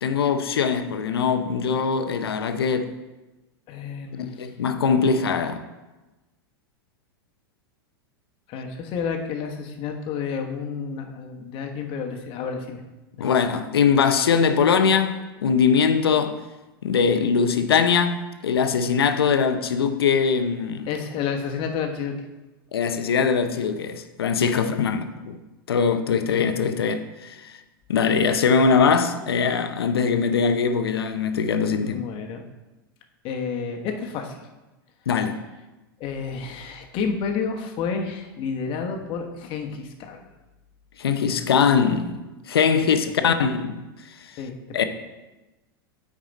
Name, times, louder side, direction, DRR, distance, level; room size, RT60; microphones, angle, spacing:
voice 1, 0.0-2.9 4.2-5.6 13.2-16.4 16.8-20.9 22.7-25.4 25.7-27.5 27.9-32.0 35.1-35.4 41.0-43.8 44.7-44.9, left 6 dB, 80° left, 0.7 m, -22 dB
voice 2, 3.7-4.5 8.5-12.8 13.2-13.4 20.9-22.1 31.8-32.4 33.2-34.4 36.0-40.3 42.8-43.3 44.4-44.9, left 6 dB, 45° left, 1.2 m, -30 dB
9.2 x 4.9 x 4.1 m
hypercardioid pair, 105°, 12 cm